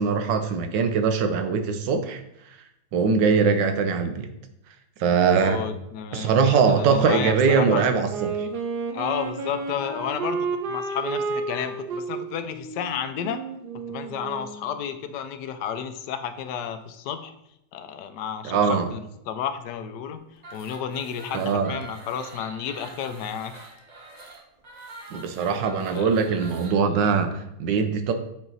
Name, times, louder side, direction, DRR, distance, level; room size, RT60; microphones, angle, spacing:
voice 1, 0.0-2.2 2.9-4.3 5.0-5.7 6.1-8.5 18.4-18.9 21.3-21.7 25.1-28.1, right 5 dB, 85° right, 7 dB, 1.5 m, -22 dB
voice 2, 5.4-7.9 8.9-13.4 13.9-17.3 17.7-20.2 20.5-23.7 25.9-26.1, left 8 dB, 75° left, 9 dB, 1.2 m, -32 dB
Wind instrument woodwind instrument, 8.1-14.7, right 4 dB, 70° right, 1.4 m, -31 dB
sound 1, 20.4-26.8, right 2 dB, 35° right, 0.7 m, -44 dB
7.9 x 4.5 x 4.0 m, 0.82 s
omnidirectional pair, 1.9 m